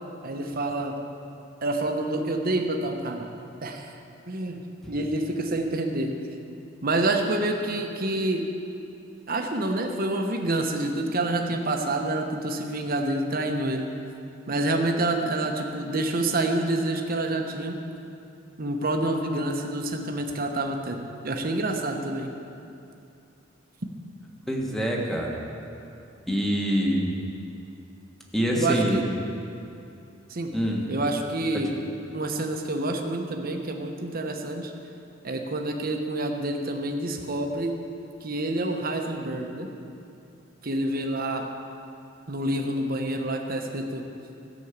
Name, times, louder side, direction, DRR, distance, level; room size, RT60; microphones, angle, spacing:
voice 1, 0.2-1.0 1.6-3.3 3.6-3.9 4.3-4.6 4.9-6.2 6.8-8.5 9.3-13.9 14.5-17.8 18.6-22.3 28.5-29.0 30.3-30.5 30.9-31.8 32.1-34.7 35.2-37.8 38.2-39.7 40.6-41.5 42.3-44.0, right 2 dB, 50° right, 3 dB, 1.1 m, -27 dB
voice 2, 24.5-25.4 26.3-27.1 28.3-29.0 30.5-30.8, equal, ahead, -2 dB, 1.5 m, -25 dB
13.5 x 6.4 x 8.2 m, 2.6 s
head